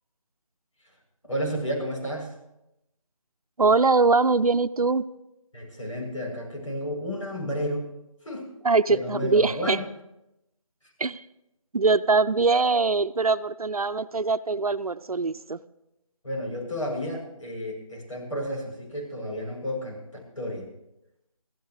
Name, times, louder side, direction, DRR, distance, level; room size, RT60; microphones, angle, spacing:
voice 1, 1.2-2.3 5.5-7.9 8.2-8.5 8.9-9.8 16.2-20.0 20.4-20.7, equal, 60° left, 0 dB, 7.6 m, -31 dB
voice 2, 3.6-5.0 8.6-9.8 11.0-11.2 11.7-15.6, right 4 dB, 85° right, 13 dB, 0.7 m, -22 dB
25.0 x 15.5 x 3.2 m, 0.87 s
figure-of-eight pair, 175°, 18 cm